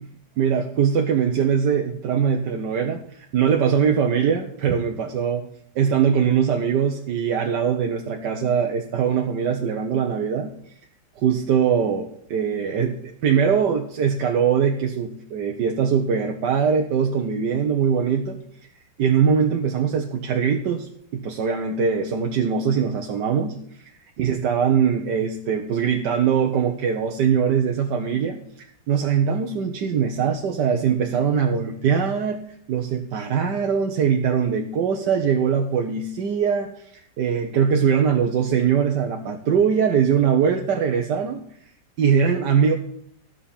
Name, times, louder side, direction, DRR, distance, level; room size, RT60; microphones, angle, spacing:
voice 1, 0.4-5.4 5.7-10.5 11.2-18.4 19.0-23.5 24.2-32.4 32.7-41.4 42.0-42.7, right 7 dB, 70° right, 3 dB, 1.5 m, -22 dB
14.0 x 5.7 x 7.2 m, 0.68 s
omnidirectional pair, 2.0 m